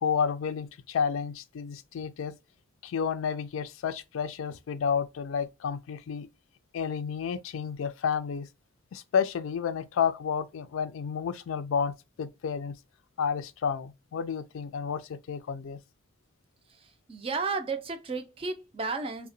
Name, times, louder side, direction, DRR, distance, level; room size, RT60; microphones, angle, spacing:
voice 1, 0.0-2.4 2.8-6.3 6.7-8.5 8.9-12.8 13.2-15.8, left 6 dB, 80° left, 0.3 m, -31 dB
voice 2, 16.8-19.3, right 4 dB, 25° right, 0.4 m, -33 dB
2.8 x 2.1 x 2.6 m
head